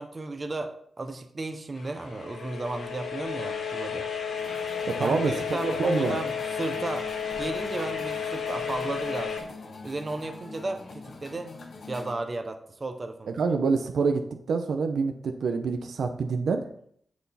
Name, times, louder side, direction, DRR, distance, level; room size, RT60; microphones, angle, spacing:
voice 1, 0.0-4.1 5.0-7.1 7.3-9.5 9.8-11.5 11.9-13.3, right 2 dB, 30° right, 6 dB, 0.8 m, -34 dB
sound 1, 1.8-9.4, left 6 dB, 80° left, 1.8 m, -32 dB
sound 2, 4.4-12.1, left 3 dB, 65° left, 1.4 m, -45 dB
voice 2, 4.9-6.2 13.3-16.6, right 4 dB, 80° right, 6 dB, 0.7 m, -27 dB
9.2 x 6.2 x 4.2 m, 0.65 s
wide cardioid pair, 155°, 0 cm